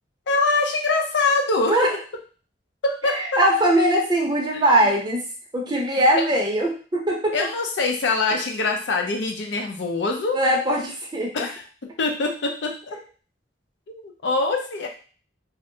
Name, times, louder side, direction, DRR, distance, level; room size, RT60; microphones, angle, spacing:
voice 1, 0.3-1.9 2.8-3.4 4.5-4.7 7.3-10.4 11.3-13.0 13.9-14.9, left 3 dB, 80° left, 2 dB, 0.5 m, -24 dB
voice 2, 3.1-5.2 5.5-7.5 10.3-11.5, right 1 dB, 25° right, -2 dB, 0.7 m, -21 dB
2.6 x 2.1 x 2.7 m, 0.38 s
head